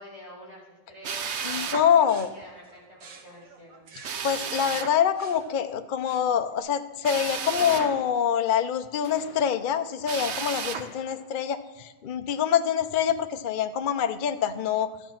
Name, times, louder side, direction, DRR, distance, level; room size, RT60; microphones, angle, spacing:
voice 1, 0.0-3.9, left 1 dB, 35° right, -5 dB, 5.5 m, -47 dB
Drill, 1.0-1.9 4.0-4.9 7.0-7.9 10.0-10.9, right 6 dB, 55° right, 0.8 m, -32 dB
voice 2, 1.4-2.3 4.2-14.9, left 8 dB, 70° left, 9 dB, 0.4 m, -25 dB
sound 1, 1.7-6.6, right 4 dB, 85° right, 2.1 m, -51 dB
sound 2, 7.6-8.6 9.0-10.0 10.7-11.7, left 5 dB, 45° left, 1.0 m, -44 dB
13.5 x 9.2 x 5.8 m, 1.2 s
omnidirectional pair, 2.0 m